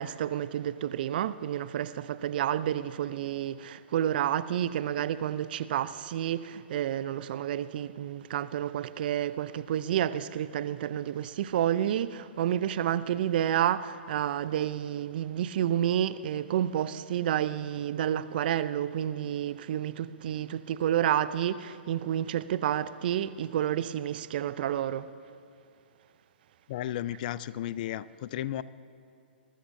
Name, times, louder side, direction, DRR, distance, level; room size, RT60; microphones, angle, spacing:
voice 1, 0.0-25.1, right 10 dB, 55° right, 0.5 m, -30 dB
voice 2, 26.7-28.6, left 12 dB, 50° left, 0.4 m, -34 dB
21.5 x 12.5 x 2.7 m
hypercardioid pair, 125°, 6 cm